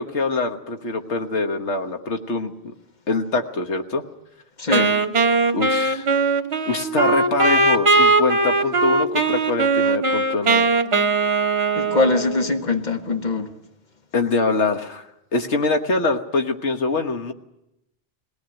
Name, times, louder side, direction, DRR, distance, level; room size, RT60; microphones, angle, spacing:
voice 1, 0.0-2.5 3.1-4.0 5.5-6.1 6.6-10.7 14.1-15.0 15.3-17.3, left 3 dB, 85° left, 1.6 m, -24 dB
voice 2, 4.6-5.0 11.7-13.5, left 3 dB, 40° left, 1.7 m, -22 dB
Wind instrument woodwind instrument, 4.7-12.6, right 3 dB, 65° right, 1.7 m, -20 dB
21.5 x 18.0 x 9.0 m
omnidirectional pair, 1.1 m